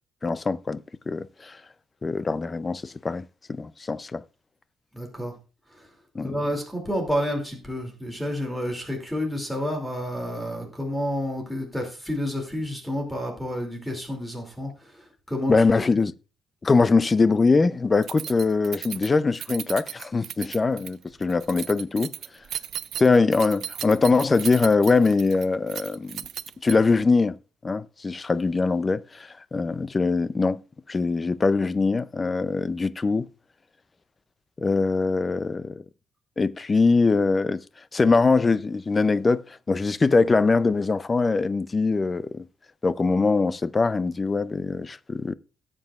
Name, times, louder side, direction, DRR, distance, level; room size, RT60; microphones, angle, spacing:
voice 1, 0.2-1.6 2.0-4.2 6.1-6.4 15.5-16.1 16.6-22.1 23.0-26.2 26.6-27.4 27.6-30.6 30.9-33.3 34.6-35.8 36.4-37.6 37.9-42.4 42.8-45.3, left 4 dB, 25° left, 0.4 m, -22 dB
voice 2, 4.9-5.3 5.7-5.9 6.2-15.5 15.8-15.9, equal, 5° left, 2.5 m, -30 dB
Keys jangling, 18.0-27.0, right 10 dB, 65° right, 0.4 m, -36 dB
18.0 x 7.6 x 2.4 m
cardioid pair, 135°, 0 cm